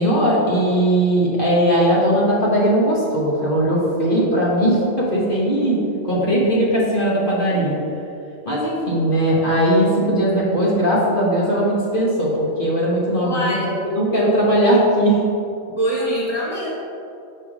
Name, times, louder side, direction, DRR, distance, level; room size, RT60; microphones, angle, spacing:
voice 1, 0.0-5.8 6.0-7.8 8.4-15.2, right 1 dB, 40° left, -5 dB, 1.1 m, -19 dB
voice 2, 13.2-13.6 15.8-16.7, right 1 dB, 20° right, -6 dB, 0.8 m, -23 dB
5.1 x 4.8 x 4.9 m, 2.6 s
omnidirectional pair, 1.5 m